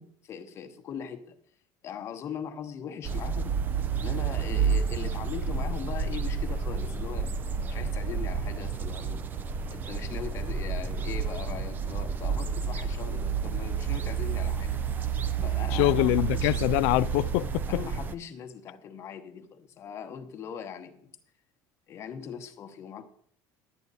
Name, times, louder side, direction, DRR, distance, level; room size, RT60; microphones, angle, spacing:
voice 1, 0.0-1.4 1.8-3.6 4.0-7.3 7.7-9.2 9.7-14.8 15.4-16.6 17.7-21.1 21.9-23.1, left 8 dB, 35° left, 1.0 m, -40 dB
sound 1, 3.0-18.1, right 6 dB, 20° right, 0.5 m, -30 dB
voice 2, 15.7-17.8, left 19 dB, 80° left, 0.4 m, -24 dB
11.5 x 8.6 x 4.1 m
cardioid pair, 170°, 8 cm